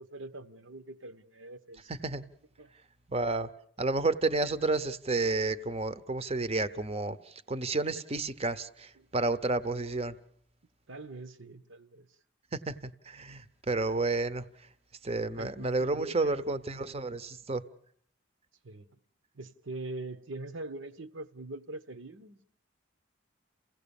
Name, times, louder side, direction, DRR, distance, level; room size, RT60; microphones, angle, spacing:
voice 1, 0.0-1.9 2.6-2.7 9.0-9.1 10.9-12.1 15.4-16.5 18.6-18.9 19.3-22.4, right 2 dB, 70° right, 1.0 m, -43 dB
voice 2, 1.9-2.3 3.1-3.5 3.8-10.2 12.5-14.4 15.0-17.6, right 3 dB, 30° right, 0.8 m, -31 dB
28.5 x 16.5 x 7.1 m
head